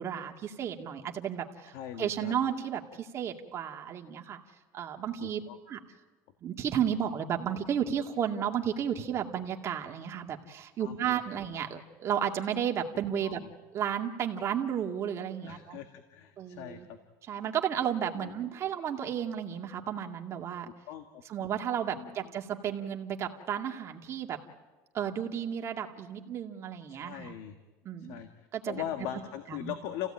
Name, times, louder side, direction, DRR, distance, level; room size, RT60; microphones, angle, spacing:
voice 1, 0.0-4.4 4.7-5.4 5.7-5.8 6.4-13.4 13.7-15.8 16.4-16.9 17.3-20.7 21.3-24.4 24.9-27.3 27.8-28.2 28.5-28.8 29.5-29.7, right 9 dB, 35° right, 2 dB, 2.2 m, -33 dB
voice 2, 1.7-2.3 5.2-5.5 10.8-11.2 13.2-13.5 15.4-17.0 18.1-18.3 20.9-21.2 21.9-22.1 26.9-27.5 28.0-30.1, left 11 dB, 75° left, 7 dB, 1.6 m, -40 dB
29.5 x 16.5 x 8.8 m, 1.3 s
cardioid pair, 145°, 8 cm